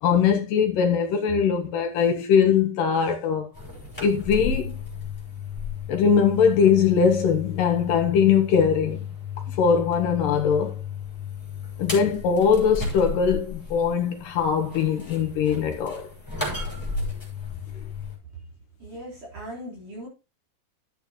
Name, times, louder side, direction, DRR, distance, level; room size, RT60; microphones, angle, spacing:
voice 1, 0.0-3.5 4.0-4.8 5.9-9.1 9.5-10.7 11.8-16.1, left 7 dB, 75° left, 2.6 m, -21 dB
sound 1, 3.5-18.2, left 5 dB, 5° left, 5.4 m, -34 dB
voice 2, 18.8-20.1, equal, 60° right, 5.4 m, -38 dB
12.5 x 8.6 x 2.9 m
omnidirectional pair, 4.0 m